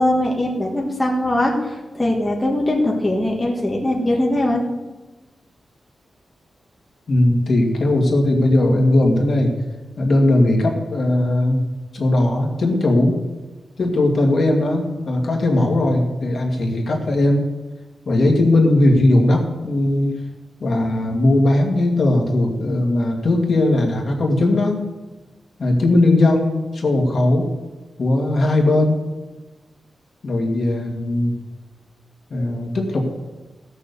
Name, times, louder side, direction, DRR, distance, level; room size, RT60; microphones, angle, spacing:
voice 1, 0.0-4.6, left 1 dB, 15° left, -2 dB, 1.7 m, -21 dB
voice 2, 7.1-9.5 10.0-11.6 11.9-13.2 13.8-17.5 18.1-20.1 20.6-24.8 25.6-27.5 28.0-29.0 30.2-31.3 32.3-33.1, left 1 dB, 45° left, 1 dB, 2.1 m, -18 dB
16.5 x 6.9 x 6.9 m, 1.2 s
wide cardioid pair, 170°, 0 cm